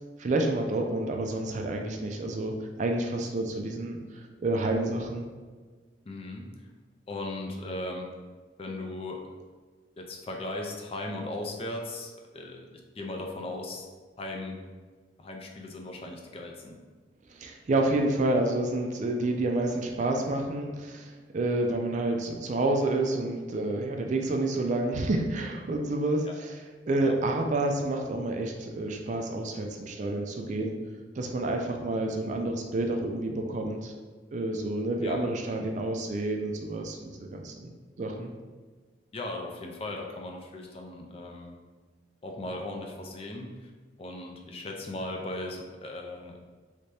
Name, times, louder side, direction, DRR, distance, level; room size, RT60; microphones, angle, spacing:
voice 1, 0.2-5.2 17.3-26.6 26.9-30.7 31.2-33.9 34.3-37.7 38.0-38.3, right 2 dB, 40° right, 2 dB, 0.3 m, -29 dB
voice 2, 6.1-6.5 7.1-8.1 8.6-9.2 10.0-12.7 13.0-13.9 14.2-14.6 15.2-16.8 26.3-26.4 27.0-27.1 35.0-35.2 39.1-41.6 42.2-43.7 44.0-46.4, left 2 dB, 30° left, 1 dB, 0.4 m, -37 dB
3.2 x 2.7 x 3.3 m, 1.4 s
head